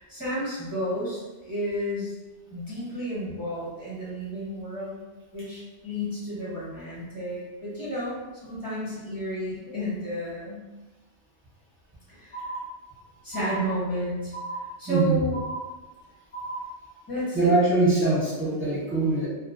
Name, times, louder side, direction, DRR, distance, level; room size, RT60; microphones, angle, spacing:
voice 1, 0.0-2.1 2.5-5.0 5.3-8.2 8.4-10.6 12.1-12.5 13.2-14.3 14.8-15.4 17.1-17.5, equal, 20° left, -10 dB, 1.0 m, -31 dB
sound 1, 12.3-13.0 13.3-14.0 14.3-15.0 15.3-16.0 16.3-17.0, right 2 dB, 65° left, 0.8 m, -36 dB
voice 2, 14.9-15.2 17.3-19.3, right 3 dB, 15° right, -8 dB, 0.6 m, -22 dB
2.2 x 2.2 x 2.4 m, 1.2 s
omnidirectional pair, 1.1 m